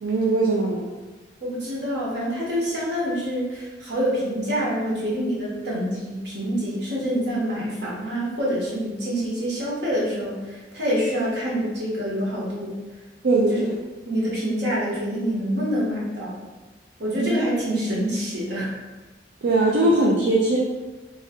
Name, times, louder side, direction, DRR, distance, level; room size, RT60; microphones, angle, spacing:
voice 1, 0.0-0.9 13.2-13.7 17.2-17.3 19.4-20.6, right 2 dB, 85° right, -3 dB, 0.4 m, -20 dB
voice 2, 1.4-12.8 13.5-13.7 14.1-16.3 17.0-18.7, equal, 70° right, -5 dB, 1.1 m, -26 dB
3.1 x 2.7 x 3.6 m, 1.2 s
head